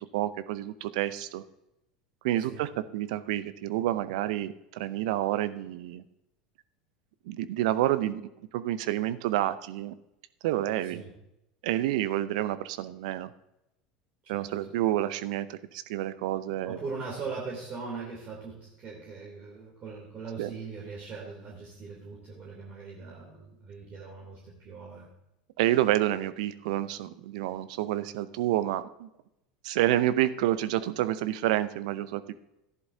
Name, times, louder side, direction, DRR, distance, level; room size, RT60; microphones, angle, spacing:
voice 1, 0.0-1.4 2.2-6.0 7.3-8.2 8.5-9.9 10.4-11.0 11.6-13.3 14.3-16.8 20.4-20.5 25.6-29.1 29.6-32.3, right 14 dB, 65° right, 14 dB, 0.6 m, -29 dB
voice 2, 2.4-2.7 10.8-11.1 14.2-14.7 16.6-25.1, right 4 dB, 40° right, -3 dB, 3.0 m, -40 dB
13.5 x 11.0 x 2.7 m, 0.87 s
hypercardioid pair, 80°, 4 cm